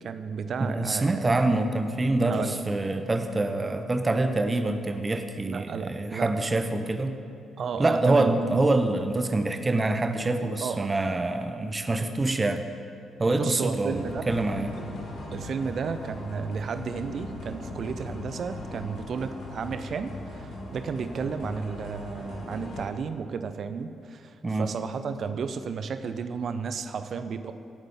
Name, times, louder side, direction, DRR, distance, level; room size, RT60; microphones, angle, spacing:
voice 1, 0.0-1.3 2.3-2.5 5.4-6.5 7.6-8.5 10.6-10.9 13.4-14.3 15.3-27.5, right 6 dB, 50° right, 10 dB, 0.7 m, -33 dB
voice 2, 0.6-7.2 7.8-12.7 13.2-14.8 24.4-24.7, right 2 dB, 25° right, 7 dB, 1.0 m, -25 dB
sound 1, 13.9-22.8, left 1 dB, 60° left, 2.1 m, -39 dB
23.0 x 8.9 x 3.9 m, 2.5 s
figure-of-eight pair, 40°, 0 cm